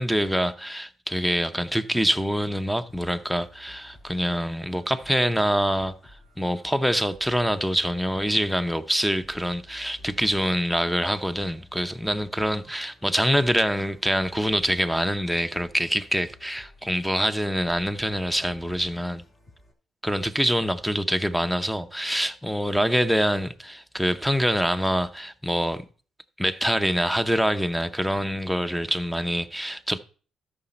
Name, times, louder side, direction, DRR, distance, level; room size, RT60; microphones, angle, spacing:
voice 1, 0.0-19.2 20.0-25.8 26.4-30.0, equal, ahead, 0.8 m, -25 dB
sound 1, 2.9-19.7, left 1 dB, 35° left, 3.2 m, -54 dB
12.5 x 5.9 x 4.4 m
cardioid pair, 90°, 0 cm